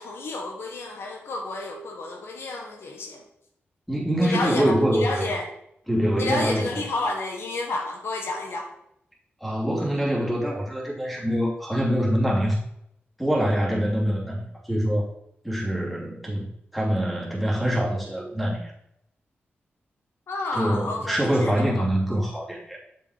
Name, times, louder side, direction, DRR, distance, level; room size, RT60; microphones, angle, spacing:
voice 1, 0.0-3.2 4.2-5.5 6.1-8.7 20.3-21.9, left 2 dB, 75° left, 2 dB, 1.4 m, -30 dB
voice 2, 3.9-5.2 5.9-6.8 9.4-12.6 13.2-15.1 15.4-16.4 16.7-18.7 20.5-22.8, equal, ahead, -3 dB, 2.7 m, -24 dB
7.1 x 5.5 x 4.9 m, 0.77 s
cardioid pair, 90°, 4 cm